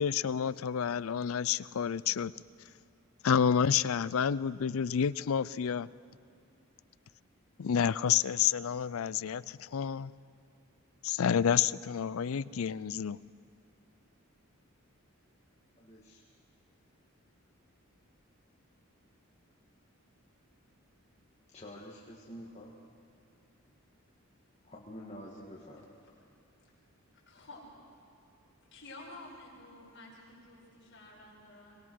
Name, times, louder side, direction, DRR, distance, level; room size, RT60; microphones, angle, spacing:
voice 1, 0.0-2.3 3.2-5.9 7.6-10.1 11.0-13.2, left 7 dB, 70° left, 19 dB, 0.4 m, -29 dB
voice 2, 15.8-16.2 21.5-22.8 24.6-25.8, equal, 30° left, -4 dB, 1.9 m, -47 dB
voice 3, 27.3-27.6 28.7-31.8, left 2 dB, 55° left, -3 dB, 5.6 m, -51 dB
24.0 x 20.5 x 6.3 m, 2.6 s
head